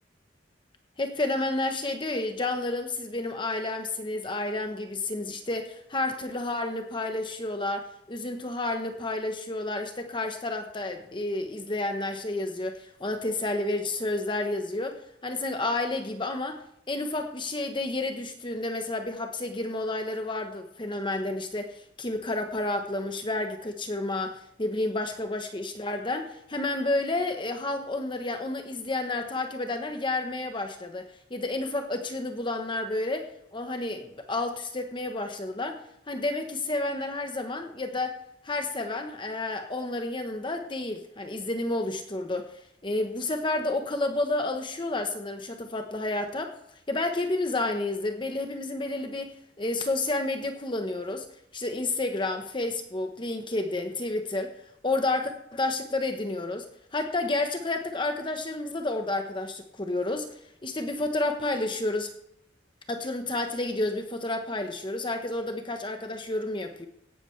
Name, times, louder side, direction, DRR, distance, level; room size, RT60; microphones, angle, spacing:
voice 1, 1.0-16.6 16.9-38.2 38.4-46.6 46.9-49.3 49.6-51.3 51.5-56.7 56.9-60.3 60.6-62.1 62.9-66.9, left 2 dB, 25° left, 5 dB, 1.0 m, -30 dB
17.0 x 12.0 x 3.3 m, 0.76 s
head